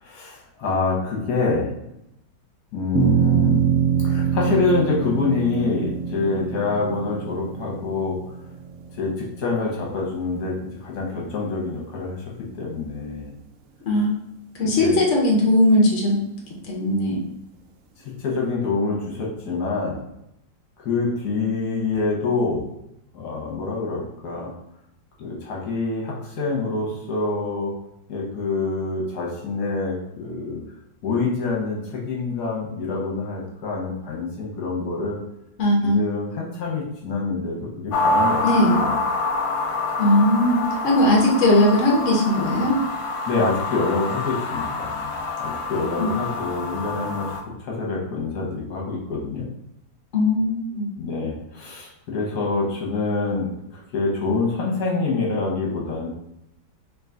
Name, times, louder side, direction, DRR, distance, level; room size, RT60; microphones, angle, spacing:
voice 1, 0.0-1.7 2.7-3.6 4.0-8.2 9.0-10.5 10.8-12.2 12.5-13.3 14.8-14.9 18.2-20.0 20.8-22.7 23.1-24.5 25.2-27.7 28.1-30.6 31.0-35.2 35.8-38.4 38.7-38.9 43.3-45.1 45.4-47.3 47.6-49.5 51.0-56.1, left 3 dB, 65° left, -2 dB, 1.5 m, -26 dB
sound 1, 2.9-9.5, right 7 dB, 75° right, 0.7 m, -24 dB
voice 2, 14.6-16.2 16.7-17.2 35.6-36.0 38.4-38.8 40.0-42.8 46.0-46.1 50.1-50.9, left 1 dB, 50° left, -1 dB, 1.1 m, -19 dB
sound 2, 37.9-47.4, left 2 dB, 80° left, 1.2 m, -26 dB
3.8 x 2.8 x 3.7 m, 0.81 s
omnidirectional pair, 1.9 m